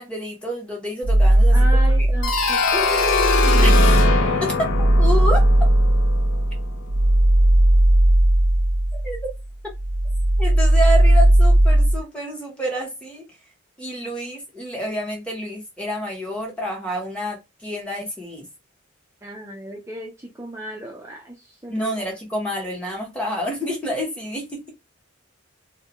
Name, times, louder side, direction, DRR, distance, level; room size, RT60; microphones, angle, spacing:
voice 1, 0.0-2.1 3.6-3.9 4.4-4.7 5.0-5.4 9.0-9.2 10.4-13.2 13.8-18.5 21.7-24.7, equal, 5° left, 0.9 m, -28 dB
sound 1, 1.0-2.5 2.9-9.4 9.7-12.0, right 1 dB, 65° right, 0.6 m, -17 dB
voice 2, 1.5-3.3 19.2-21.9, right 1 dB, 15° right, 0.4 m, -34 dB
sound 2, 2.2-6.9, left 4 dB, 70° left, 0.4 m, -22 dB
2.2 x 2.1 x 2.8 m
head